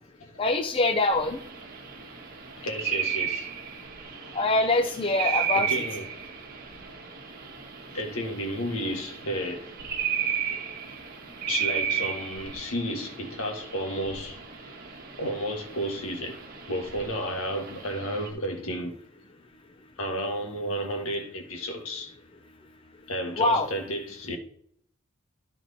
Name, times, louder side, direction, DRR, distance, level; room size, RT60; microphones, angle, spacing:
voice 1, 0.4-1.4 4.3-5.7 23.4-23.7, left 2 dB, 25° left, 0.6 m, -24 dB
sound 1, 1.1-18.3, right 8 dB, 45° right, 1.3 m, -34 dB
voice 2, 2.6-3.5 4.2-4.3 5.5-6.1 7.9-9.7 11.5-14.7 15.2-16.4 16.7-19.0 20.0-22.1 23.1-24.4, equal, 75° left, 1.6 m, -32 dB
13.0 x 4.4 x 4.2 m
head